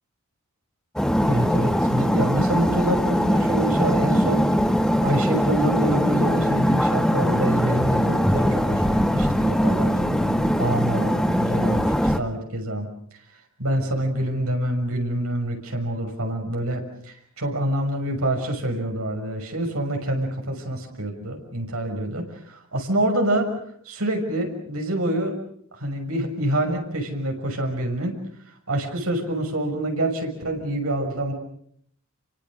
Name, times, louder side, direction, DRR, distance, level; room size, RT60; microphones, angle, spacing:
sound 1, 1.0-12.2, equal, 5° left, 1.2 m, -21 dB
voice 1, 1.2-4.4 5.0-12.9 13.6-23.5 23.8-25.4 25.8-28.1 28.7-31.3, right 1 dB, 85° right, 2 dB, 6.5 m, -26 dB
29.5 x 24.5 x 6.5 m, 0.65 s
head